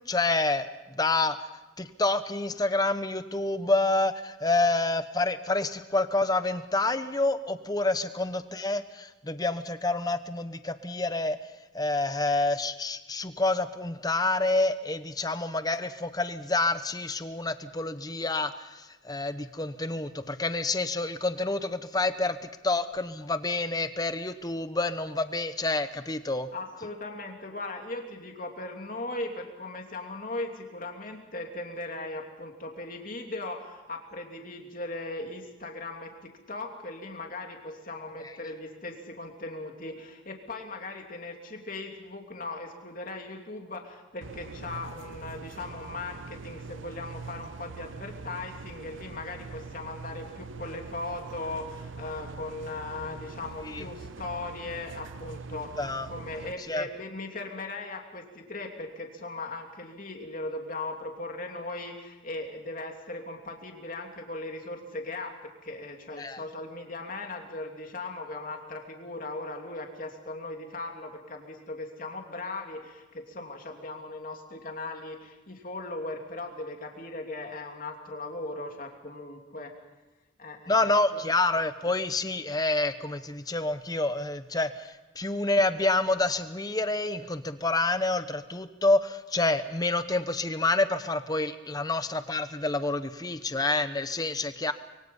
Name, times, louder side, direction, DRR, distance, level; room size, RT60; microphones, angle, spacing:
voice 1, 0.1-1.4 1.8-11.4 11.7-22.4 22.6-26.5 53.7-53.8 55.8-56.1 56.7-56.8 66.2-66.4 80.7-94.7, left 2 dB, 20° left, 11 dB, 1.0 m, -28 dB
voice 2, 26.5-79.7 80.4-81.3, left 2 dB, 45° left, 2 dB, 3.0 m, -38 dB
sound 1, 44.2-56.5, right 4 dB, 80° right, 0.8 m, -43 dB
25.0 x 23.5 x 5.5 m, 1.1 s
head